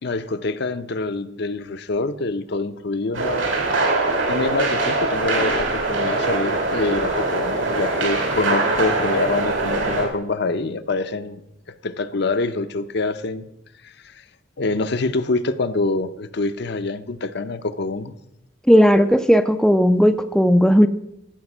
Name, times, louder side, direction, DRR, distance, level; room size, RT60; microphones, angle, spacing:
voice 1, 0.0-3.5 4.3-11.4 11.7-13.5 13.8-14.2 14.6-18.2, left 3 dB, 55° left, 10 dB, 0.6 m, -25 dB
sound 1, 3.1-10.1, right 2 dB, 80° right, 3.3 m, -22 dB
voice 2, 18.7-20.9, equal, 5° left, 8 dB, 0.4 m, -15 dB
15.0 x 5.2 x 7.3 m, 0.83 s
head